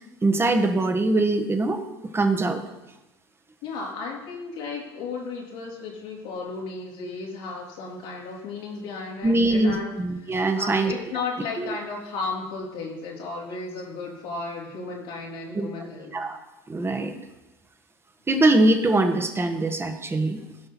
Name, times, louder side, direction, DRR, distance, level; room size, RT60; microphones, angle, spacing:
voice 1, 0.2-1.8 2.1-2.6 9.2-10.9 11.6-11.7 15.5-15.7 16.1-16.4 16.7-17.2 18.3-20.4, right 2 dB, 20° right, 5 dB, 1.4 m, -22 dB
voice 2, 3.6-16.2, left 4 dB, 80° left, -4 dB, 2.9 m, -34 dB
16.5 x 5.6 x 4.5 m, 1.0 s
supercardioid pair, 85°, 11 cm